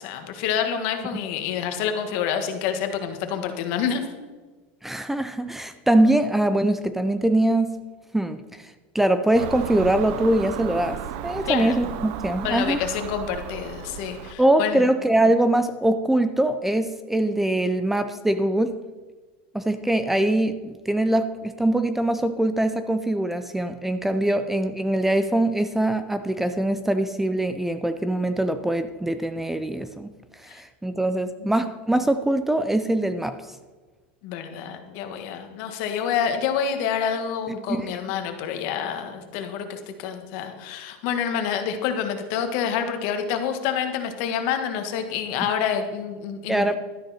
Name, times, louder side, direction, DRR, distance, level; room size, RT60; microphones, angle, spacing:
voice 1, 0.0-4.0 11.4-11.8 12.4-14.9 31.4-31.5 34.2-46.7, left 8 dB, 60° left, 6 dB, 1.6 m, -27 dB
voice 2, 4.8-7.7 8.1-12.8 14.4-18.7 19.5-30.1 30.4-33.4 37.5-38.0 46.5-46.7, right 1 dB, 5° right, 10 dB, 0.5 m, -23 dB
Car passing by / Engine, 9.3-14.3, right 9 dB, 60° right, 0.8 m, -34 dB
12.5 x 10.5 x 4.3 m, 1.3 s
supercardioid pair, 145°, 6 cm